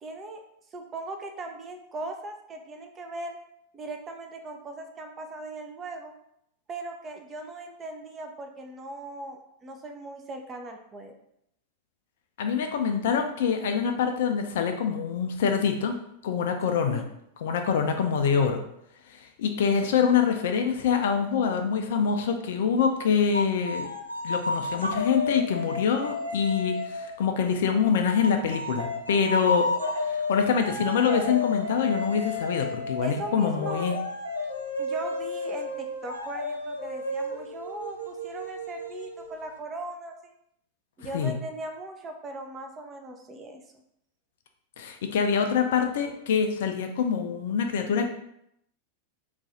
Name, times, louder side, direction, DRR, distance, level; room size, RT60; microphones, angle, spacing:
voice 1, 0.0-0.4 0.7-3.4 3.7-6.1 6.7-11.1 16.9-17.0 33.0-34.0 34.8-40.2 41.0-43.6, right 2 dB, 25° right, 4 dB, 0.4 m, -39 dB
voice 2, 12.4-16.0 16.2-17.0 17.4-18.6 19.1-23.9 24.2-29.7 30.0-34.0 41.1-41.3 44.8-48.0, left 6 dB, 55° left, 5 dB, 0.4 m, -25 dB
sound 1, 23.3-27.2 28.2-39.5, left 2 dB, 90° right, 0.4 m, -32 dB
2.4 x 2.3 x 4.0 m, 0.76 s
figure-of-eight pair, 90°, 0 cm